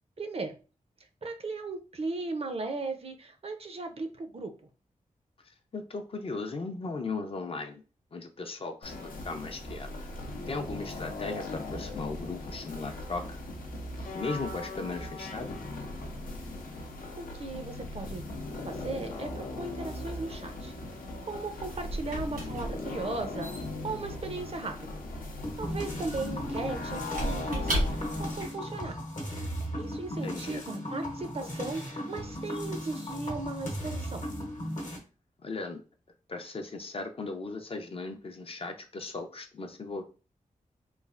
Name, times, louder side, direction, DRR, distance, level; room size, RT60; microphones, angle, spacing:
voice 1, 0.2-0.6 1.2-4.5 17.2-18.2 18.6-24.9 25.6-29.0 29.8-34.2, right 3 dB, 45° right, 7 dB, 0.5 m, -37 dB
voice 2, 5.4-7.8 8.1-10.1 10.5-13.4 14.1-15.6 30.2-30.6 35.4-35.8 36.3-40.0, left 3 dB, 40° left, 6 dB, 0.4 m, -37 dB
sound 1, 8.8-28.4, left 2 dB, 85° left, 0.6 m, -39 dB
Squeak / Wood, 21.2-28.4, equal, 85° right, 1.2 m, -36 dB
sound 2, 25.4-35.0, equal, 60° left, 0.9 m, -37 dB
3.1 x 2.4 x 2.4 m, 0.34 s
wide cardioid pair, 85°, 14 cm